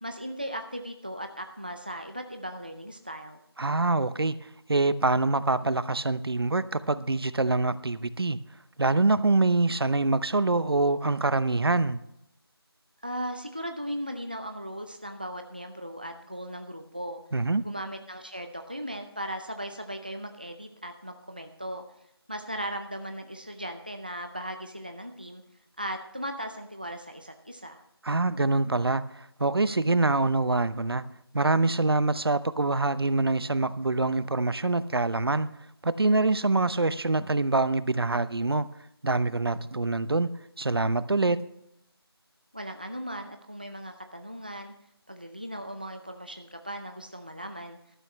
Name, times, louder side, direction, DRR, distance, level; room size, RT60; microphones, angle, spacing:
voice 1, 0.0-3.4 13.0-17.2 17.6-21.8 22.3-25.4 25.8-27.8 42.5-44.7 45.1-47.8, equal, 20° right, 5 dB, 0.5 m, -37 dB
voice 2, 3.6-4.4 4.7-8.4 8.8-12.0 17.3-17.6 28.0-31.0 31.3-35.5 35.8-38.7 39.0-40.3 40.6-41.4, right 3 dB, 65° right, 15 dB, 0.7 m, -25 dB
14.0 x 12.5 x 3.2 m, 0.79 s
figure-of-eight pair, 180°, 13 cm